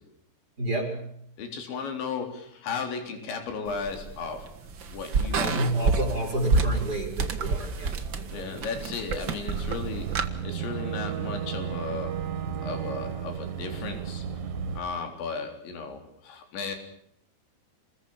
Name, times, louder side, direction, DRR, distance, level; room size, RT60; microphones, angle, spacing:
voice 1, 0.6-1.3 5.4-8.5, right 1 dB, 20° right, 2 dB, 5.1 m, -30 dB
voice 2, 1.4-4.5 4.9-5.7 8.3-12.2 12.6-14.4 14.8-16.8, left 5 dB, 80° left, 5 dB, 5.9 m, -35 dB
sound 1, 3.7-10.3, right 4 dB, 90° right, 1.0 m, -29 dB
Boat Water vehicle / Engine, 9.5-14.8, right 9 dB, 55° right, 3.7 m, -33 dB
29.0 x 21.0 x 7.2 m, 0.71 s
omnidirectional pair, 5.2 m